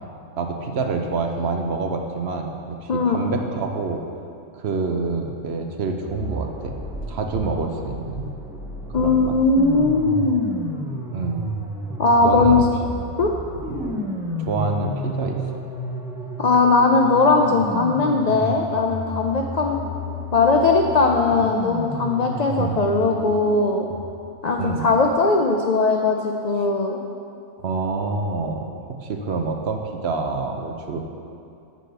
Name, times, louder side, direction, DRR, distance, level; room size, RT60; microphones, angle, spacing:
voice 1, 0.4-4.0 4.5-6.7 7.1-8.3 9.0-9.3 11.1-11.5 12.2-12.6 13.7-14.0 14.4-15.4 22.6-22.8 24.6-24.9 27.6-28.7 29.0-31.0, right 4 dB, 60° right, 3 dB, 0.9 m, -27 dB
sound 1, 6.1-24.0, equal, 5° right, 0.6 m, -32 dB
voice 2, 8.9-10.4 12.0-12.6 13.2-13.3 16.4-19.8 20.3-23.9 24.4-27.0, left 3 dB, 80° left, 2 dB, 0.3 m, -19 dB
7.7 x 5.1 x 6.6 m, 2.5 s
omnidirectional pair, 1.4 m